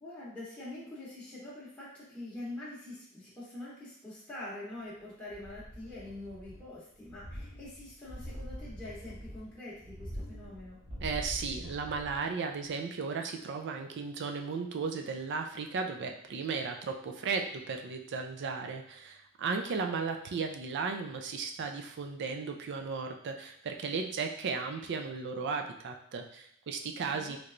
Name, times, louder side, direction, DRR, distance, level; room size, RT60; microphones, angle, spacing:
voice 1, 0.0-10.8 27.1-27.3, left 1 dB, 10° left, -11 dB, 0.9 m, -45 dB
sound 1, 5.3-6.7 7.0-12.3 12.7-12.8, equal, 35° right, 0.8 m, -44 dB
voice 2, 11.0-27.4, right 5 dB, 55° right, 5 dB, 0.4 m, -35 dB
3.2 x 3.0 x 2.5 m, 0.71 s
head